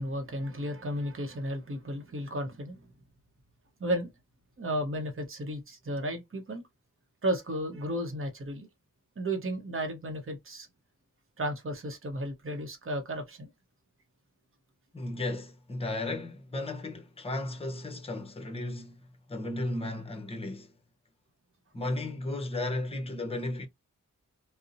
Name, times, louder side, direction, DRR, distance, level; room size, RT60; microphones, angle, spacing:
voice 1, 0.0-2.8 3.8-4.1 4.6-6.6 7.2-8.7 9.2-10.7 11.4-13.5, right 1 dB, 40° right, 0.8 m, -33 dB
voice 2, 14.9-19.0 19.3-20.7 21.7-23.7, left 2 dB, 20° left, 0.7 m, -34 dB
2.6 x 2.0 x 2.6 m
wide cardioid pair, 55°, 33 cm